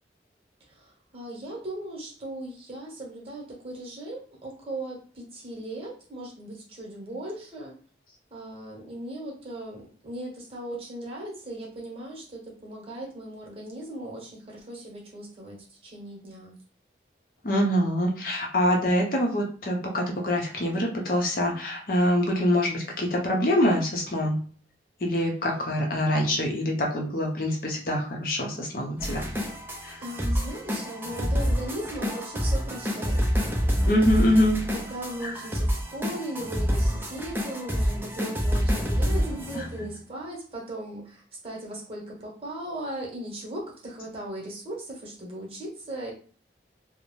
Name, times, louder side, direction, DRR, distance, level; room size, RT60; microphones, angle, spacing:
voice 1, 0.6-7.8 8.3-16.6 30.0-33.2 34.2-46.1, right 1 dB, 30° right, -3 dB, 0.9 m, -38 dB
voice 2, 17.4-24.4 25.0-29.3 29.8-30.0 33.9-34.6 35.2-35.3, left 1 dB, 50° left, 0 dB, 0.6 m, -25 dB
sound 1, 29.0-39.9, equal, 10° right, 0.4 m, -27 dB
2.5 x 2.0 x 3.0 m, 0.43 s
head